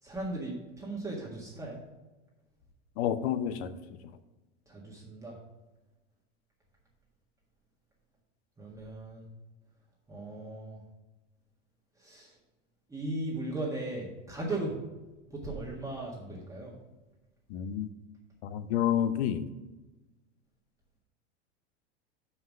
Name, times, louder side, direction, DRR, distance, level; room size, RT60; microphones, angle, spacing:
voice 1, 0.0-1.8 4.7-5.4 8.6-9.3 10.1-10.8 12.0-12.3 12.9-14.8 15.3-16.7, right 2 dB, 10° right, -4 dB, 1.6 m, -37 dB
voice 2, 3.0-4.0 17.5-17.9 18.4-19.5, left 10 dB, 60° left, 12 dB, 0.8 m, -29 dB
5.7 x 5.6 x 6.2 m, 1.1 s
hypercardioid pair, 105°, 36 cm